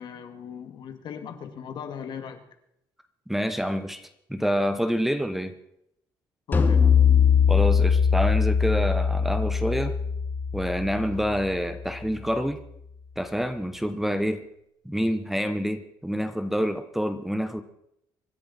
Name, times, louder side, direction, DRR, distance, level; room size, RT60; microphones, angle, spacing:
voice 1, 0.0-2.4 6.5-6.9, left 7 dB, 60° left, 7 dB, 2.1 m, -37 dB
voice 2, 3.3-5.5 7.5-9.9 10.5-12.6 13.2-14.4 14.8-17.6, equal, 5° right, 10 dB, 1.0 m, -27 dB
sound 1, 6.5-11.9, left 6 dB, 25° left, 2.6 m, -22 dB
25.0 x 10.5 x 4.3 m, 0.77 s
cardioid pair, 105°, 9 cm